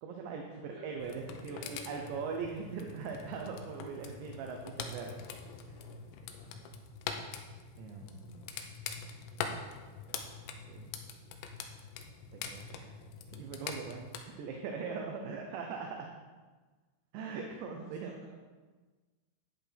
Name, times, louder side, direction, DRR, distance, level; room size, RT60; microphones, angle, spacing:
voice 1, 0.0-5.2 5.7-5.8 7.8-8.5 10.7-10.9 12.4-12.9 13.3-16.1 17.1-18.2, right 5 dB, 75° right, 2 dB, 2.9 m, -41 dB
voice 2, 0.5-2.3 6.4-6.7 13.7-13.9 17.7-18.3, equal, 35° right, -8 dB, 4.4 m, -54 dB
sound 1, 1.0-14.2, left 6 dB, 80° left, 3.0 m, -44 dB
11.0 x 9.9 x 3.5 m, 1.3 s
omnidirectional pair, 5.5 m